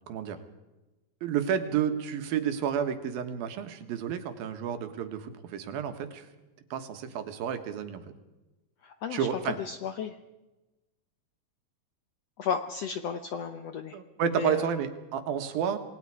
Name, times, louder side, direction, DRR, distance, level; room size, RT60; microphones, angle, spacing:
voice 1, 0.1-0.4 1.2-6.2 6.7-8.0 9.1-9.6 13.9-15.8, right 8 dB, 90° right, 8 dB, 3.3 m, -31 dB
voice 2, 8.8-10.2 12.4-14.0 14.3-14.7, left 7 dB, 75° left, 8 dB, 1.5 m, -33 dB
28.0 x 20.0 x 4.8 m, 1.1 s
omnidirectional pair, 4.1 m